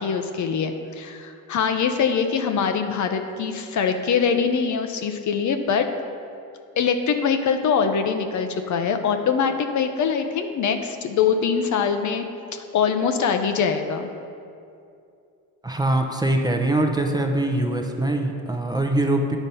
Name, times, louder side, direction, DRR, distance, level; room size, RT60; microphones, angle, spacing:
voice 1, 0.0-5.9 6.8-12.2 12.7-14.1, left 6 dB, 50° left, 7 dB, 0.6 m, -23 dB
voice 2, 15.6-19.4, right 1 dB, 10° right, 3 dB, 0.6 m, -23 dB
9.0 x 4.0 x 5.4 m, 2.5 s
supercardioid pair, 85°, 38 cm